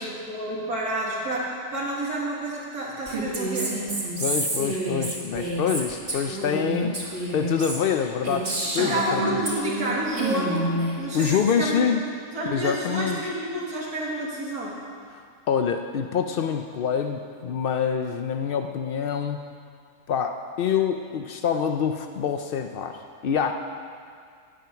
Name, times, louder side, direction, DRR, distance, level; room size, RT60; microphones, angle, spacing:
voice 1, 0.0-3.8 8.8-11.9 12.3-14.8, right 1 dB, 70° right, -6 dB, 2.4 m, -29 dB
Female speech woman speaking, 3.1-9.9 10.2-11.4, right 1 dB, 35° right, 2.2 m, -29 dB
voice 2, 4.2-9.4 11.1-12.0 12.4-13.2 15.5-19.5 20.1-23.5, left 7 dB, 70° left, 6 dB, 0.5 m, -26 dB
16.5 x 9.2 x 5.8 m, 2.2 s
omnidirectional pair, 1.7 m